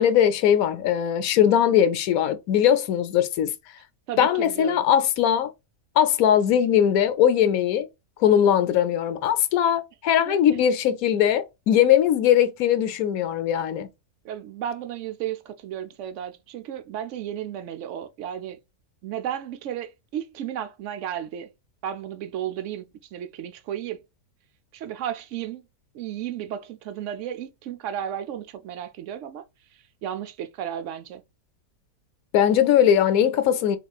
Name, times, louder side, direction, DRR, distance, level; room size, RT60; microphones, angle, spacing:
voice 1, 0.0-3.5 4.2-5.5 6.0-7.9 8.2-13.9 32.3-33.8, left 9 dB, 75° left, 1.1 m, -20 dB
voice 2, 4.1-4.8 10.3-10.4 14.2-18.6 19.0-21.5 21.8-24.0 24.7-25.6 25.9-29.4 30.0-31.2, right 10 dB, 65° right, 0.8 m, -33 dB
4.2 x 3.0 x 2.2 m
omnidirectional pair, 1.6 m